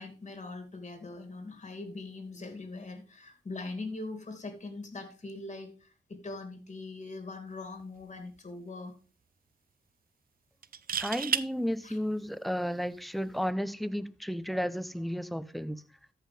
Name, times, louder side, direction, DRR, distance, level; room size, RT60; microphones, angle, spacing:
voice 1, 0.0-8.9 11.8-12.0, left 3 dB, 40° left, 2.5 m, -42 dB
sound 1, 7.8-8.0 8.4-8.5 10.6-11.5 13.3-13.5, right 7 dB, 55° right, 0.5 m, -31 dB
voice 2, 11.0-15.8, equal, ahead, 0.8 m, -33 dB
14.0 x 5.6 x 3.4 m
cardioid pair, 50°, 18 cm